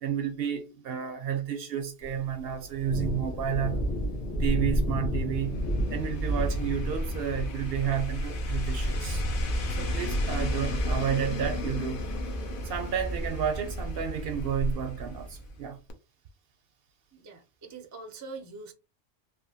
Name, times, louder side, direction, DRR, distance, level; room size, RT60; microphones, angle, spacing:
voice 1, 0.0-3.9 4.4-5.6 5.9-9.2 9.7-12.0 12.6-15.8, right 9 dB, 65° right, 0.7 m, -31 dB
Thunder, 2.0-14.7, equal, 75° left, 1.2 m, -33 dB
sound 1, 5.3-15.6 15.9-16.0, left 1 dB, 55° left, 0.7 m, -33 dB
voice 2, 17.1-18.7, right 3 dB, 30° right, 0.3 m, -43 dB
3.2 x 2.4 x 2.6 m
omnidirectional pair, 1.2 m